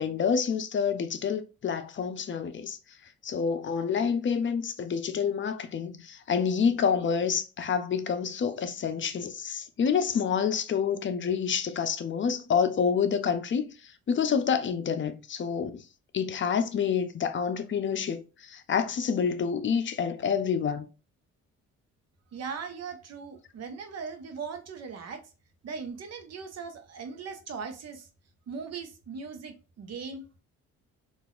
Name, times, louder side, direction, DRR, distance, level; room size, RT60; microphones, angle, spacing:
voice 1, 0.0-2.8 3.2-15.8 16.1-20.9, left 6 dB, 40° left, 0.6 m, -28 dB
voice 2, 22.3-25.2 25.6-28.1 28.5-30.4, right 5 dB, 60° right, 0.9 m, -39 dB
3.9 x 2.5 x 2.4 m
cardioid pair, 90°, 30 cm